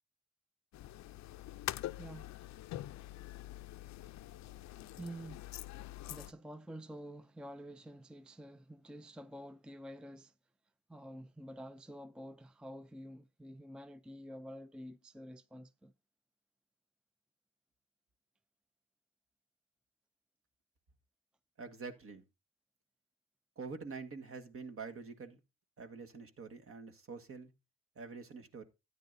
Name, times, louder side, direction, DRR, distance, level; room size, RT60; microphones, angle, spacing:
sound 1, 0.7-6.3, left 14 dB, 65° left, 0.5 m, -45 dB
voice 1, 2.0-2.4 5.0-5.5 6.1-10.3 10.9-15.9, equal, 5° right, 0.4 m, -49 dB
voice 2, 21.6-22.2 23.5-25.4 25.8-27.5 27.9-28.6, right 4 dB, 45° right, 1.6 m, -46 dB
13.0 x 9.5 x 2.6 m
cardioid pair, 90°, 30 cm